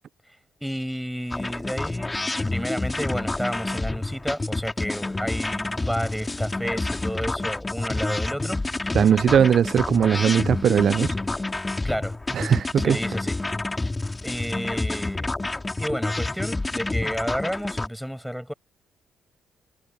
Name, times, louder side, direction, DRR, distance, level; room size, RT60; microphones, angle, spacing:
voice 1, 0.6-2.2 2.5-9.0 11.8-12.2 12.8-13.3 13.7-13.9 14.2-15.3 15.8-18.5, equal, ahead, 7.0 m, -31 dB
sound 1, 1.3-17.9, left 2 dB, 20° left, 4.0 m, -28 dB
voice 2, 8.9-11.1 12.3-13.0, right 8 dB, 60° right, 0.3 m, -19 dB
cardioid pair, 90°, 0 cm